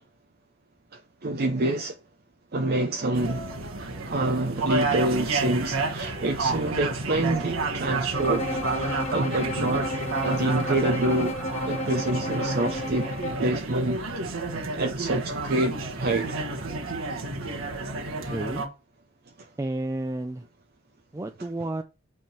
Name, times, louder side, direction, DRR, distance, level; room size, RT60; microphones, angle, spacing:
voice 1, 0.9-2.0 2.5-3.5 4.1-8.5 8.8-9.9 10.2-11.4 11.7-13.1 13.4-14.0 14.7-16.4 19.4-19.5, right 2 dB, 50° right, 0.7 m, -27 dB
sound 1, 3.1-18.7, right 3 dB, 70° right, 1.4 m, -30 dB
Bowed string instrument, 8.1-13.5, left 1 dB, 30° left, 1.1 m, -32 dB
voice 2, 18.2-18.6 19.6-20.4 21.1-21.8, right 1 dB, 15° right, 0.4 m, -31 dB
8.9 x 3.6 x 5.9 m
head